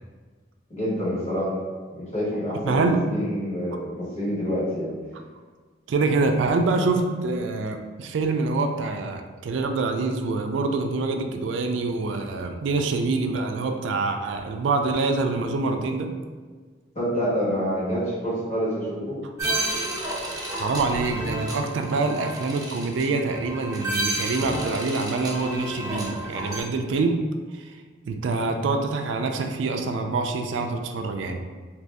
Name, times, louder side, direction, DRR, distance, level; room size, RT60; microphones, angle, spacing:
voice 1, 0.7-1.6 1.9-4.9 16.9-19.2, equal, 40° left, -9 dB, 1.4 m, -27 dB
voice 2, 2.6-3.0 5.9-16.1 20.5-27.2 27.5-27.8 28.0-31.4, right 3 dB, 75° right, 5 dB, 0.3 m, -25 dB
sound 1, 19.4-26.6, right 1 dB, 20° right, 0.8 m, -31 dB
2.9 x 2.6 x 3.3 m, 1.5 s
head